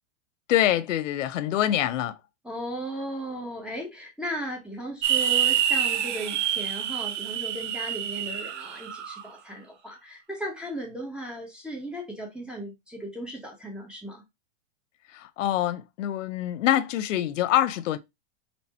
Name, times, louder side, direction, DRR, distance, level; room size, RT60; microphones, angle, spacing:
voice 1, 0.5-2.2 15.1-18.0, left 12 dB, 85° left, 0.6 m, -25 dB
voice 2, 2.4-14.2, right 1 dB, 5° right, 1.1 m, -36 dB
sound 1, 5.0-9.2, right 9 dB, 75° right, 1.0 m, -27 dB
4.3 x 2.9 x 4.2 m
supercardioid pair, 145°, 36 cm